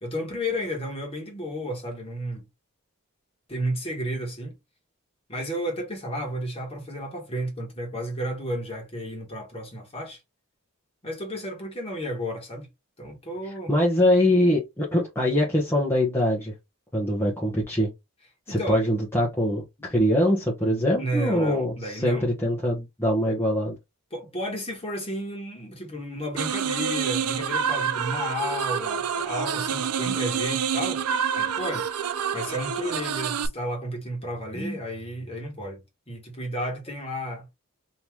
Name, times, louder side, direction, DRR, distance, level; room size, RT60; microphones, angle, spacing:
voice 1, 0.0-2.5 3.5-4.5 5.3-10.2 11.0-12.7 13.0-13.7 18.5-18.8 19.8-19.9 21.0-22.3 24.1-31.0 31.3-31.8 32.3-35.8 36.1-37.4, equal, 25° left, 1.4 m, -32 dB
voice 2, 13.4-16.5 16.9-17.9 18.5-23.7 30.1-30.2 34.5-34.8, left 1 dB, 10° left, 0.9 m, -23 dB
sound 1, 26.4-33.5, right 7 dB, 80° right, 0.5 m, -27 dB
3.0 x 2.9 x 3.5 m
head